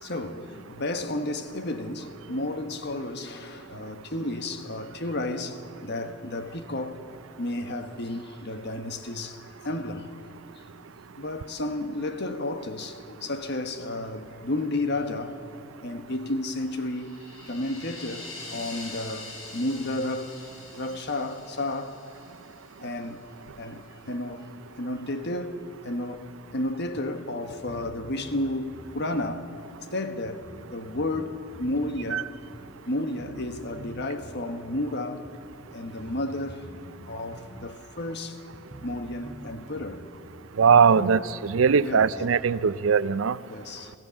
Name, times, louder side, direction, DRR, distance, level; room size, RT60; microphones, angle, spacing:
voice 1, 0.0-7.0 7.4-10.1 11.2-15.4 15.8-17.2 17.5-20.4 20.7-22.0 22.8-24.5 24.8-29.5 29.9-32.3 32.9-35.3 35.7-36.6 37.1-38.4 38.8-40.1 41.0-41.2 41.8-42.1 43.5-43.9, left 1 dB, 55° left, 1.4 m, -32 dB
sound 1, 16.7-22.9, left 2 dB, 85° left, 6.4 m, -44 dB
sound 2, 26.5-26.6 27.0-27.1 27.5-28.5 28.7-29.0 29.7-29.8 30.2-32.1 32.5-32.6 33.2-33.5 33.7-34.5 35.2-35.3 35.8-37.6 38.0-38.1 38.5-39.5 39.8-40.0 40.8-40.9 41.3-42.6, equal, 15° left, 2.2 m, -46 dB
voice 2, 40.6-43.4, right 6 dB, 80° right, 0.5 m, -20 dB
28.5 x 15.0 x 7.1 m
head